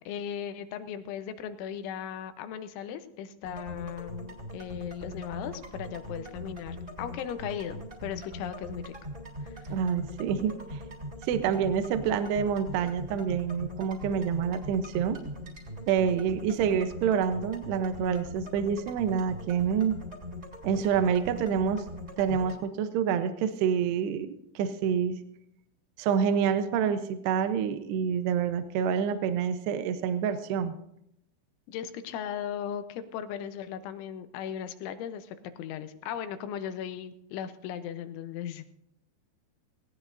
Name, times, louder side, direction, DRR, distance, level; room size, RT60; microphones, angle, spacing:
voice 1, 0.0-8.9 9.4-9.8 31.7-38.7, left 9 dB, 85° left, 10 dB, 3.3 m, -37 dB
sound 1, 3.4-22.6, equal, 20° right, 3.1 m, -41 dB
voice 2, 9.7-10.8 11.3-15.2 15.9-20.0 20.6-21.9 22.2-25.2 26.0-30.7, right 7 dB, 75° right, 9 dB, 2.8 m, -27 dB
19.0 x 18.0 x 2.6 m, 0.79 s
omnidirectional pair, 5.3 m